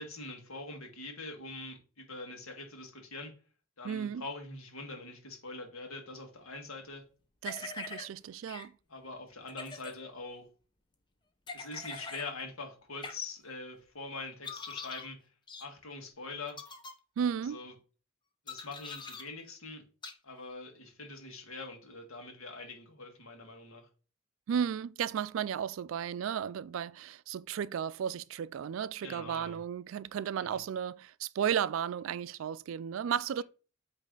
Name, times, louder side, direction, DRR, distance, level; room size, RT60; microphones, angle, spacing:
voice 1, 0.0-3.3 3.8-7.0 8.9-10.5 11.5-15.2 15.6-16.6 17.4-17.7 18.4-19.8 20.2-23.8 29.0-29.6 30.4-30.6, left 3 dB, 90° left, 1.7 m, -44 dB
voice 2, 3.8-4.2 7.4-8.7 17.2-17.6 24.5-33.4, right 8 dB, 70° right, 0.3 m, -34 dB
sound 1, 7.4-8.1 8.5-8.7 9.5-9.9 11.5-12.3 13.0-13.1 14.4-15.1 15.5-15.7 16.5-16.9 18.5-19.2 20.0-20.1, left 4 dB, 20° left, 0.7 m, -43 dB
8.3 x 3.2 x 3.8 m
head